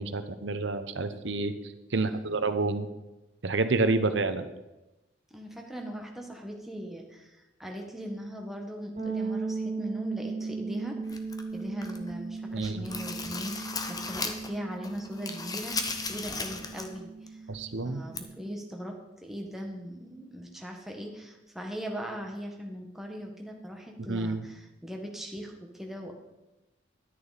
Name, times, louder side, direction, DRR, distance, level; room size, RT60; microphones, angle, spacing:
voice 1, 0.0-2.9 3.4-4.5 12.5-12.9 17.5-18.0 24.0-24.5, right 3 dB, 65° right, 10 dB, 0.8 m, -29 dB
voice 2, 1.9-2.3 5.3-11.0 11.5-17.4 17.8-26.1, equal, ahead, 1 dB, 1.4 m, -40 dB
sound 1, 9.0-18.7, right 4 dB, 35° right, 2.9 m, -37 dB
sound 2, 11.1-12.1 12.5-14.6 14.8-17.0 17.3-17.4 18.1-18.2, left 4 dB, 20° left, 0.8 m, -36 dB
11.0 x 9.9 x 4.1 m, 1.0 s
head